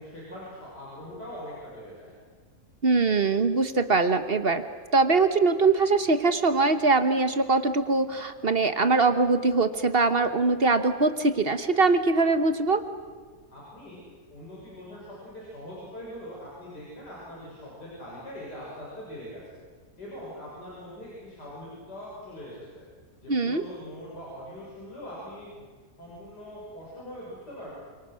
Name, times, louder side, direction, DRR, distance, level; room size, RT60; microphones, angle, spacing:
voice 1, 0.0-2.1 13.5-14.0 14.3-19.6 20.0-22.8 23.2-25.7 26.0-27.7, equal, 90° left, -6 dB, 7.2 m, -42 dB
voice 2, 2.8-4.6 4.9-12.8 23.3-23.6, right 3 dB, 40° right, 10 dB, 1.3 m, -22 dB
28.5 x 26.5 x 6.4 m, 1.5 s
omnidirectional pair, 1.7 m